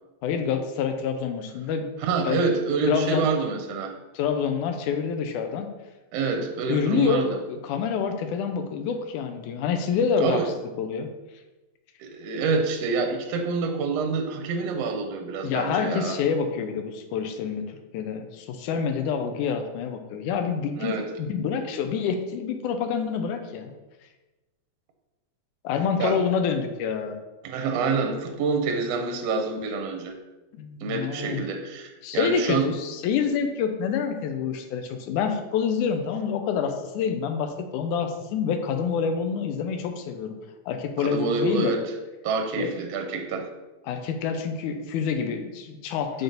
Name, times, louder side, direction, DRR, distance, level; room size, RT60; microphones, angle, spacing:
voice 1, 0.2-1.9 2.2-2.4 2.9-3.3 4.1-5.7 6.7-10.4 10.8-11.1 15.4-23.7 25.6-27.2 30.5-31.4 32.0-40.4 40.7-41.7 42.6-42.7 43.8-46.2, left 6 dB, 85° left, 6 dB, 2.1 m, -27 dB
voice 2, 2.0-3.9 6.1-7.4 10.2-10.5 12.0-16.2 20.8-21.1 26.0-26.2 27.4-30.2 30.8-32.7 41.0-41.8 42.2-43.5, right 4 dB, 75° right, 4 dB, 1.5 m, -27 dB
6.1 x 4.0 x 5.2 m, 1.1 s
omnidirectional pair, 3.6 m